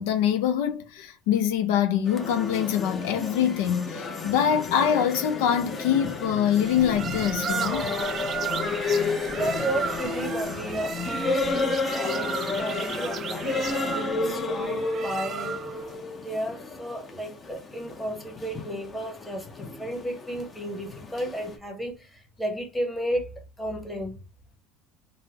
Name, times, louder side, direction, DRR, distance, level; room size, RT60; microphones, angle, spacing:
voice 1, 0.0-7.9, left 9 dB, 85° left, 0.5 m, -24 dB
sound 1, 2.1-21.6, left 3 dB, 25° left, 0.7 m, -32 dB
sound 2, 6.6-15.9, right 7 dB, 40° right, 0.3 m, -34 dB
voice 2, 9.3-15.6 16.1-24.2, right 1 dB, 5° left, 1.0 m, -33 dB
3.7 x 2.1 x 2.8 m
supercardioid pair, 115°, 0 cm